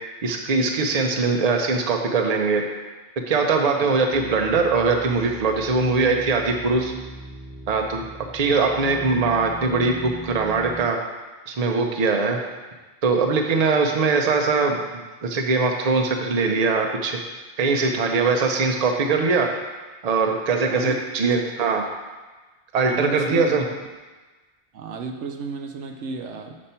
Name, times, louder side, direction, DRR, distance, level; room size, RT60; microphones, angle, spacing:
voice 1, 0.2-2.6 3.3-6.9 7.7-8.0 8.3-11.0 11.5-12.4 13.0-17.2 17.6-19.5 20.0-21.9 22.7-23.6, right 4 dB, 40° right, 3 dB, 0.7 m, -21 dB
sound 1, 4.1-10.9, right 1 dB, 10° right, 1.4 m, -40 dB
voice 2, 20.7-21.4 22.9-23.6 24.7-26.6, right 4 dB, 80° right, 4 dB, 1.0 m, -33 dB
6.9 x 5.2 x 4.3 m, 1.2 s
omnidirectional pair, 1.2 m